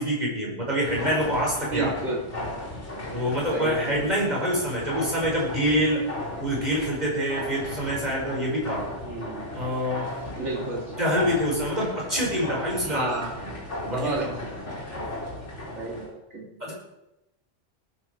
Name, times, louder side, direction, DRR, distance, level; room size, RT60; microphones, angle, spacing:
voice 1, 0.0-1.9 3.1-6.0 6.4-8.9 9.5-10.1 11.0-13.1 13.4-13.5 13.8-14.3 16.6-16.7, equal, 35° right, -3 dB, 5.7 m, -26 dB
sound 1, 0.8-16.1, left 1 dB, 60° left, 4.2 m, -36 dB
voice 2, 1.6-2.2 3.5-4.0 9.0-9.5 10.4-10.9 12.8-13.4 13.8-14.3 15.7-16.5, right 2 dB, 60° right, -1 dB, 2.9 m, -32 dB
19.0 x 10.5 x 4.7 m, 0.89 s
omnidirectional pair, 1.3 m